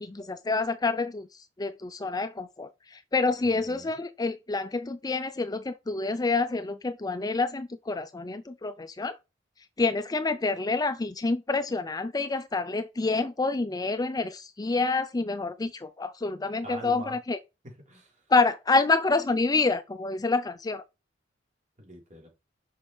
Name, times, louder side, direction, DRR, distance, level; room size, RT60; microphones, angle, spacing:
voice 1, 0.0-1.3 1.6-9.2 9.8-17.4 18.3-20.8, left 3 dB, 20° left, 0.5 m, -27 dB
voice 2, 3.4-4.0 16.6-17.2 17.6-18.3 21.8-22.3, right 1 dB, 40° right, 3.7 m, -44 dB
6.2 x 5.5 x 4.6 m
head